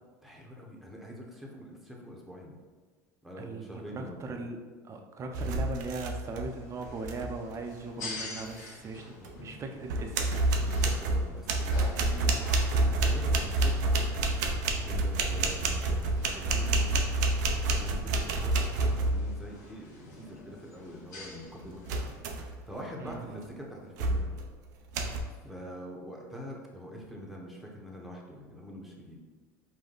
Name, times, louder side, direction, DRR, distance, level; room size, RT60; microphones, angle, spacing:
voice 1, 0.2-2.5 3.2-4.5 8.9-9.3 10.6-14.3 14.8-17.0 17.6-22.0 22.4-24.3 25.4-29.2, equal, ahead, -2 dB, 0.9 m, -44 dB
voice 2, 3.4-4.6 4.8-10.2 23.0-23.2, right 3 dB, 30° right, 4 dB, 0.6 m, -39 dB
sound 1, 5.3-6.5 6.8-7.3 9.2-9.3 9.8-19.4 21.9-22.6 23.1-23.3 24.0-24.4 24.9-25.2, right 2 dB, 85° right, 0.5 m, -28 dB
sound 2, 6.0-22.2, left 3 dB, 85° left, 1.2 m, -48 dB
5.1 x 2.2 x 3.9 m, 1.4 s
supercardioid pair, 105°, 9 cm